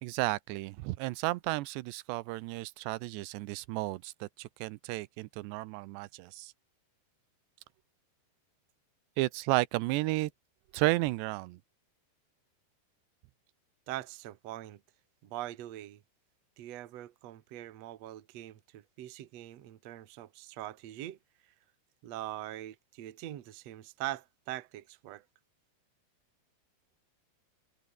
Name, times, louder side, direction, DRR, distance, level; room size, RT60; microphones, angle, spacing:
voice 1, 0.0-6.5 9.2-10.3 10.7-11.6, right 20 dB, 85° right, 2.9 m, -33 dB
voice 2, 13.9-14.8 15.2-16.0 16.6-21.2 22.0-25.2, right 14 dB, 60° right, 1.8 m, -42 dB
omnidirectional pair, 4.9 m